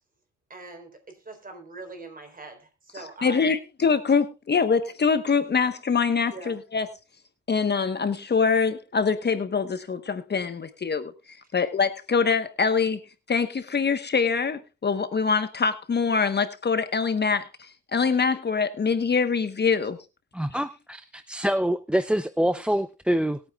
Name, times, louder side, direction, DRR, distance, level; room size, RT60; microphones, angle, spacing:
voice 1, 0.5-3.6 6.3-6.6 11.5-11.6, right 3 dB, 30° right, 5 dB, 4.0 m, -42 dB
voice 2, 3.2-6.9 7.5-13.0 13.3-20.0, left 5 dB, 35° left, 11 dB, 1.1 m, -24 dB
voice 3, 20.3-23.4, equal, 5° right, 13 dB, 0.6 m, -25 dB
21.0 x 8.9 x 2.4 m, 0.28 s
cardioid pair, 90°, 30 cm